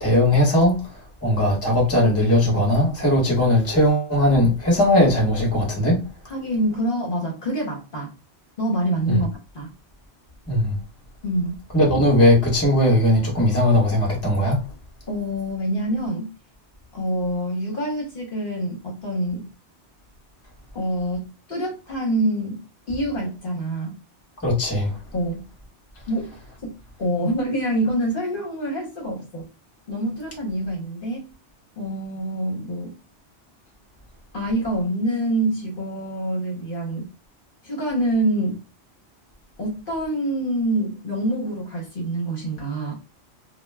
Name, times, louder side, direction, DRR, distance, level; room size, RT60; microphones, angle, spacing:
voice 1, 0.0-6.0 9.1-9.2 10.5-10.8 11.7-14.6 24.4-25.0, left 1 dB, 15° left, 0.9 m, -19 dB
voice 2, 6.3-8.1 8.6-9.3 9.5-9.7 11.2-11.6 15.1-16.3 16.9-19.5 20.7-24.0 25.1-25.4 26.1-26.3 26.6-26.7 27.0-29.5 29.9-31.3 31.8-32.9 34.3-37.1 37.6-38.6 39.6-43.0, right 1 dB, 50° left, 0.9 m, -26 dB
2.2 x 2.2 x 3.2 m
omnidirectional pair, 1.2 m